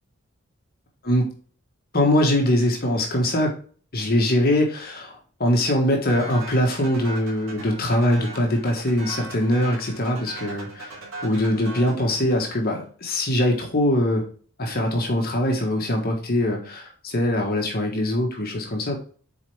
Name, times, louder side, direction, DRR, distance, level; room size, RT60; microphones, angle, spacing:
voice 1, 1.9-3.5 3.9-14.3 14.6-18.9, left 1 dB, 45° left, 1 dB, 1.5 m, -22 dB
sound 1, 6.1-12.8, right 2 dB, 85° right, 2.8 m, -39 dB
7.0 x 4.5 x 3.4 m, 0.43 s
head